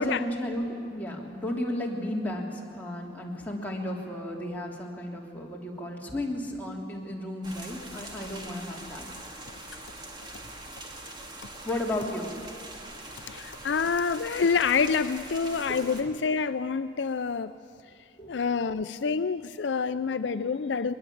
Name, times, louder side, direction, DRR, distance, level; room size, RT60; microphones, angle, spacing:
voice 1, 0.0-9.1 11.6-12.3 15.7-15.8 18.2-18.3, left 1 dB, 10° left, 3.1 m, -33 dB
sound 1, 7.4-16.0, right 1 dB, 25° right, 2.2 m, -43 dB
voice 2, 13.3-17.5 18.3-20.9, left 5 dB, 70° left, 0.5 m, -27 dB
21.5 x 21.0 x 8.7 m
head